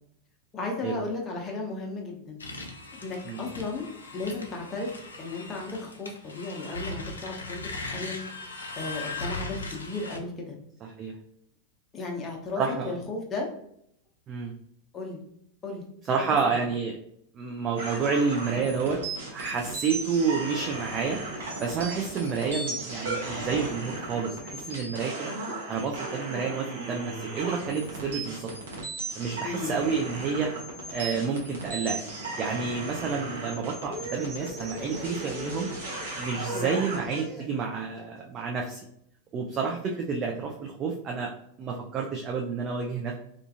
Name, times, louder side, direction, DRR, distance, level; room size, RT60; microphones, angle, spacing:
voice 1, 0.5-2.4 3.0-3.9 4.1-8.2 8.7-10.6 11.9-13.5 14.9-15.2 15.6-15.8 16.2-16.6 29.4-29.7 36.5-36.7, left 3 dB, 25° left, 0 dB, 0.7 m, -35 dB
sound 1, 2.4-10.2, left 2 dB, 75° left, 0.4 m, -39 dB
voice 2, 12.6-12.9 14.3-14.5 16.1-17.0 17.3-19.0 19.3-21.2 21.6-25.3 25.7-28.5 29.2-30.5 30.9-32.1 32.4-35.7 36.2-38.8 39.3-41.3 41.6-43.1, right 5 dB, 30° right, 0 dB, 0.3 m, -29 dB
sound 2, 17.8-37.2, right 2 dB, 60° right, 0.8 m, -36 dB
sound 3, 33.8-38.4, left 1 dB, 10° right, 1.0 m, -41 dB
2.4 x 2.3 x 2.6 m, 0.72 s
figure-of-eight pair, 90°, 0 cm